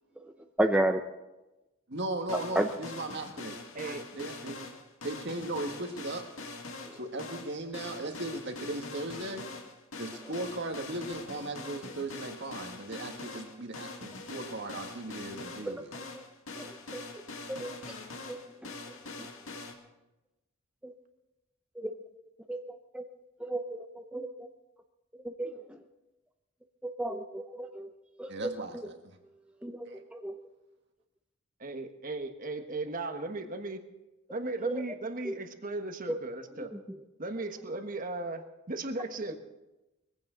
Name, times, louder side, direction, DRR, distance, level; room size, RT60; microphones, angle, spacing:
voice 1, 0.6-1.0 2.5-2.7 6.8-7.0 15.6-15.9 16.1-16.2 16.6-17.2 17.5-17.9 18.3-19.0 20.8-20.9 21.8-22.0 22.5-23.1 23.4-24.5 25.2-25.8 26.8-27.9 28.2-28.9 29.6-30.4 34.6-34.7 35.2-35.3 36.1-36.2 36.6-36.7, right 1 dB, 5° right, 5 dB, 0.7 m, -33 dB
voice 2, 1.9-4.7 5.0-6.2 6.9-9.5 10.0-15.9 28.3-29.2 29.9-30.0, right 2 dB, 60° right, 4 dB, 1.7 m, -37 dB
sound 1, 2.3-19.7, left 3 dB, 85° left, 2.1 m, -43 dB
voice 3, 3.7-4.1 31.6-33.8 34.3-36.7 37.2-39.4, right 2 dB, 40° right, 6 dB, 1.3 m, -36 dB
21.0 x 15.5 x 3.9 m, 1.0 s
head